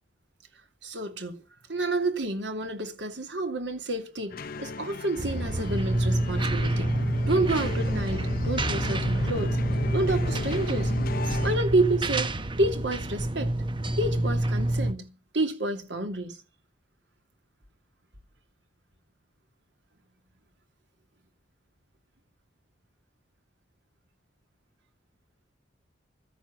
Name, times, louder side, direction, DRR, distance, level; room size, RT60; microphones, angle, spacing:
voice 1, 0.8-1.4 1.7-6.9 7.3-9.6 9.9-11.0 11.4-12.3 12.6-13.6 14.0-16.4, right 2 dB, 70° right, 2.7 m, -29 dB
sound 1, 4.3-11.6, left 3 dB, 55° left, 0.7 m, -35 dB
sound 2, 5.2-14.9, right 1 dB, 25° right, 1.0 m, -28 dB
13.5 x 10.5 x 7.4 m
head